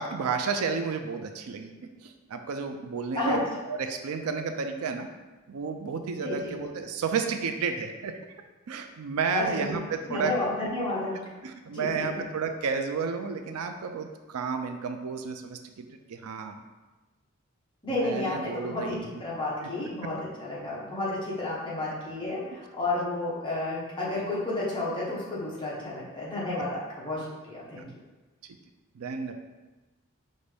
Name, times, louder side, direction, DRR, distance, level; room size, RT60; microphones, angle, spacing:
voice 1, 0.0-1.7 2.0-5.1 5.5-8.2 8.7-10.3 11.4-16.5 17.9-19.1 19.6-19.7 27.8-27.9 29.0-29.3, right 5 dB, 85° right, 6 dB, 0.4 m, -32 dB
voice 2, 6.2-6.5 9.3-9.8 10.1-11.2 11.7-12.2 17.8-27.9, left 2 dB, 20° left, -6 dB, 1.0 m, -31 dB
5.3 x 2.6 x 3.3 m, 1.2 s
head